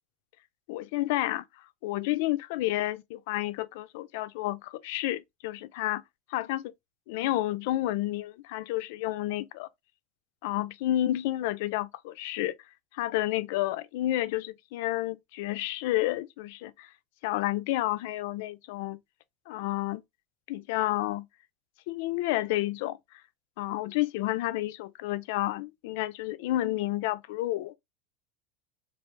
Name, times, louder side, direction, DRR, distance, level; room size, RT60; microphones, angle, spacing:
voice 1, 0.7-1.4 1.8-6.0 6.3-6.7 7.1-9.7 10.4-12.6 12.9-16.9 17.2-19.0 19.5-20.0 20.5-21.3 21.9-23.0 23.6-27.7, left 15 dB, 70° left, 0.3 m, -30 dB
3.2 x 2.4 x 3.0 m
hypercardioid pair, 100°, 0 cm